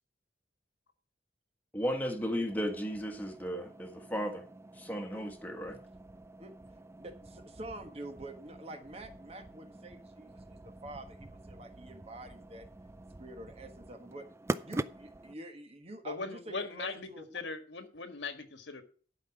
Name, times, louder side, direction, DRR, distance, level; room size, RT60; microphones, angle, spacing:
voice 1, 1.7-4.4 4.8-5.8, equal, 10° left, 4 dB, 1.5 m, -35 dB
sound 1, 2.5-15.3, right 2 dB, 15° right, 0.4 m, -44 dB
voice 2, 7.0-12.7 13.2-14.3 14.6-17.5, right 1 dB, 35° right, 6 dB, 1.4 m, -47 dB
voice 3, 16.0-18.8, left 4 dB, 75° left, 8 dB, 1.6 m, -39 dB
12.0 x 5.4 x 5.9 m, 0.41 s
head